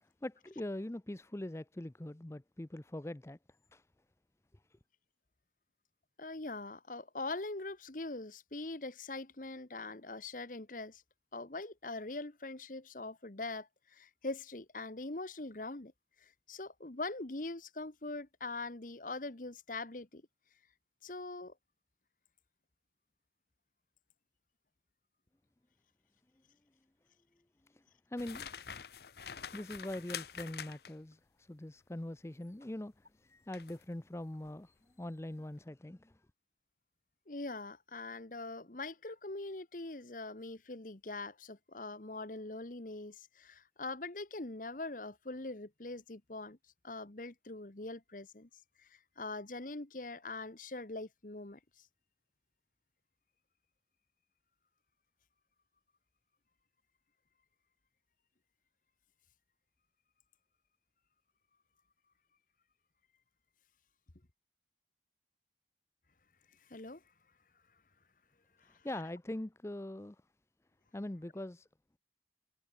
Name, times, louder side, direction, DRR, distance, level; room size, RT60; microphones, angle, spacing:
voice 1, 0.0-3.4 3.7-3.8 4.7-4.8 27.7-28.5 29.3-36.2 68.7-70.2 70.9-71.7, left 1 dB, 15° left, 0.5 m, -43 dB
voice 2, 6.2-11.0 11.3-15.9 16.2-20.2 21.0-21.5 37.3-46.6 46.8-48.5 48.8-51.6 66.7-67.0 68.6-68.8, left 2 dB, 50° left, 1.3 m, -42 dB
sound 1, 28.2-31.1 33.5-33.8 34.3-34.5, left 8 dB, 65° left, 0.8 m, -46 dB
head